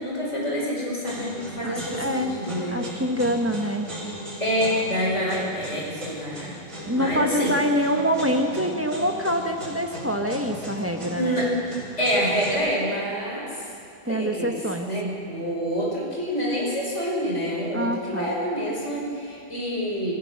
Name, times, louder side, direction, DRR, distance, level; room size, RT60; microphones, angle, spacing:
voice 1, 0.0-2.8 4.4-6.6 6.9-7.6 11.1-11.5 12.0-13.5 14.1-14.6 14.9-20.1, equal, 55° left, -3 dB, 5.8 m, -27 dB
sound 1, 1.0-12.5, equal, 65° right, 6.7 m, -37 dB
voice 2, 1.6-2.3 2.7-3.9 6.9-11.4 14.0-14.9 17.7-18.3, equal, 10° right, 3 dB, 1.3 m, -25 dB
27.0 x 15.5 x 6.7 m, 2.6 s
omnidirectional pair, 1.5 m